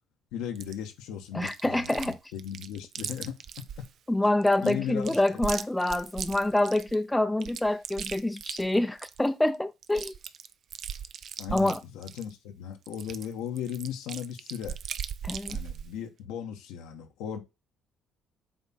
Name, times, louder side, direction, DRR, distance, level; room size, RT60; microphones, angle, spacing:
voice 1, 0.3-3.9 4.6-5.4 11.4-14.7 15.5-17.4, left 9 dB, 85° left, 1.3 m, -37 dB
Chewing mastication, 0.5-0.7 1.4-2.1 2.4-3.9 4.4-6.9 7.4-9.3 9.5-9.6 9.8-12.3 12.9-15.9, right 8 dB, 60° right, 0.6 m, -38 dB
voice 2, 1.3-2.2 4.1-10.1 11.5-11.8 15.2-15.6, left 1 dB, 10° left, 0.6 m, -26 dB
7.8 x 3.7 x 4.2 m
supercardioid pair, 75°, 0 cm